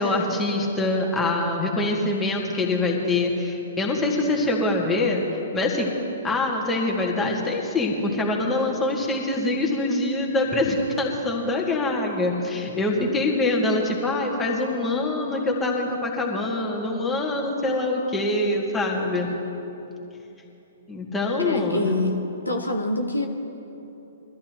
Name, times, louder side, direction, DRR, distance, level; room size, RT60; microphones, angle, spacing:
voice 1, 0.0-5.9 6.2-19.3 20.9-21.8, left 2 dB, 10° left, -1 dB, 2.3 m, -24 dB
voice 2, 21.4-23.3, left 2 dB, 85° left, 3 dB, 1.1 m, -26 dB
23.5 x 13.5 x 3.1 m, 3.0 s
figure-of-eight pair, 115°, 0 cm